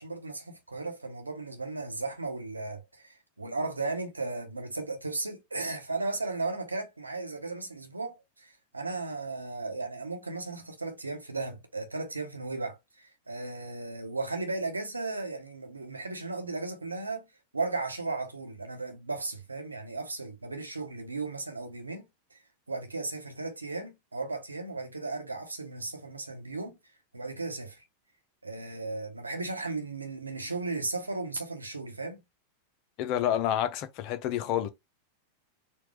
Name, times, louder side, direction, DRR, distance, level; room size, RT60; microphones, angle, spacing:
voice 1, 0.0-12.8 13.3-17.2 17.5-22.0 22.3-22.4 22.7-26.8 27.1-27.8 28.4-32.2, right 3 dB, 80° right, 1.0 m, -35 dB
voice 2, 33.0-34.7, left 11 dB, 40° left, 0.7 m, -28 dB
4.4 x 2.4 x 3.3 m
figure-of-eight pair, 90°, 0 cm